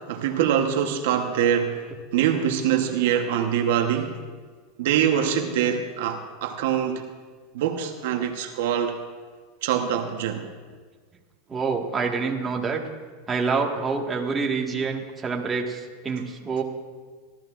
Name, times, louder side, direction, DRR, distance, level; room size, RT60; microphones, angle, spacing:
voice 1, 0.1-1.8 2.1-4.2 4.8-7.1 7.5-9.0 9.6-10.5, right 9 dB, 75° right, 4 dB, 1.1 m, -24 dB
voice 2, 11.5-12.8 13.3-16.6, right 4 dB, 20° right, 0 dB, 1.7 m, -27 dB
26.0 x 13.5 x 2.6 m, 1.5 s
supercardioid pair, 130°, 0 cm